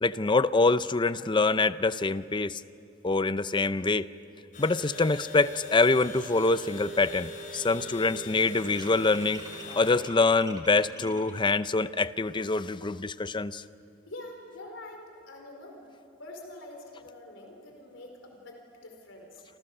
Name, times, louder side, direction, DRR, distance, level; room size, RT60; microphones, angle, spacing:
voice 1, 0.0-2.6 3.0-4.1 4.6-9.4 9.7-13.6, left 3 dB, 25° left, 14 dB, 0.5 m, -25 dB
sound 1, 4.5-10.0, left 1 dB, 40° left, 4.5 m, -42 dB
sound 2, 7.5-11.5, right 3 dB, 20° right, 2.8 m, -48 dB
voice 2, 14.1-15.8 16.2-19.4, left 2 dB, 70° left, 2 dB, 4.6 m, -45 dB
29.0 x 26.5 x 6.7 m, 2.6 s
head